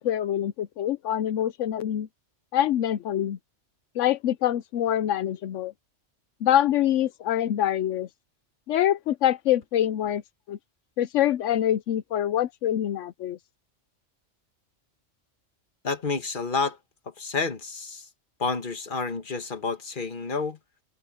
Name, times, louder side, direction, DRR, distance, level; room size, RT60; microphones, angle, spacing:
voice 1, 0.0-2.1 2.5-3.4 4.0-5.7 6.4-8.1 8.7-10.2 10.5-10.6 11.0-13.4, left 11 dB, 85° left, 1.0 m, -25 dB
voice 2, 15.8-16.8 17.2-18.0 18.4-20.6, left 4 dB, 45° left, 1.7 m, -29 dB
omnidirectional pair, 1.2 m